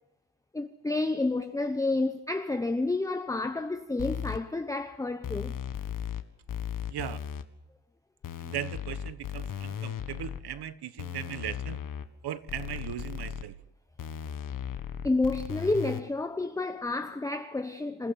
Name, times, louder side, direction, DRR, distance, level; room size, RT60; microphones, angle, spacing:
voice 1, 0.5-5.6 15.0-18.1, left 2 dB, 10° left, 0.8 m, -30 dB
sound 1, 4.0-4.4 5.2-6.2 6.5-7.4 8.2-10.4 11.0-12.1 12.5-13.4 14.0-16.0, left 9 dB, 50° left, 1.7 m, -36 dB
voice 2, 6.9-7.2 8.4-11.8 12.2-13.6, right 10 dB, 65° right, 1.5 m, -38 dB
27.5 x 16.0 x 7.6 m
cardioid pair, 155°, 42 cm